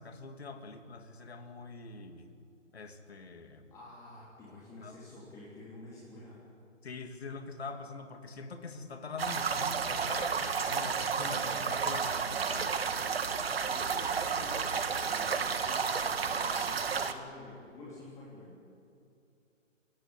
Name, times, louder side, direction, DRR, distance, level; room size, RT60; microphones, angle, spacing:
voice 1, 0.0-2.3 2.7-3.7 4.8-5.0 6.8-12.8, left 4 dB, 55° left, 6 dB, 3.0 m, -44 dB
voice 2, 3.7-6.5 13.4-18.6, left 2 dB, 10° left, -7 dB, 3.3 m, -49 dB
sound 1, 9.2-17.1, right 6 dB, 50° right, 1.9 m, -32 dB
28.5 x 17.0 x 9.8 m, 2.5 s
figure-of-eight pair, 155°, 38 cm